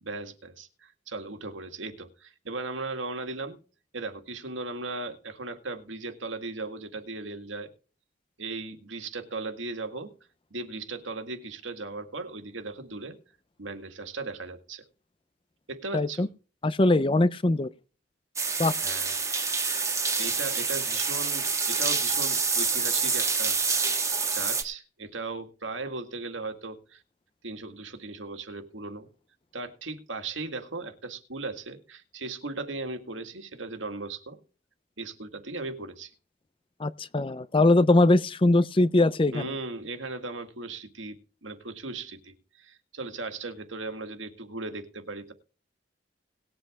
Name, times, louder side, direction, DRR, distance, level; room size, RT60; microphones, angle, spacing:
voice 1, 0.0-3.6 3.9-7.7 8.4-10.1 10.5-13.2 13.6-14.8 15.7-16.3 18.8-19.5 20.2-23.9 24.3-27.0 27.4-29.1 29.5-34.4 35.0-36.1 39.3-41.2 41.4-45.3, right 3 dB, 85° right, 2.0 m, -37 dB
voice 2, 15.9-16.3 16.6-17.7 18.6-18.7 36.8-39.5, left 2 dB, 25° left, 0.5 m, -21 dB
sound 1, 18.4-24.6, right 4 dB, 15° right, 1.4 m, -27 dB
19.0 x 7.8 x 3.6 m
head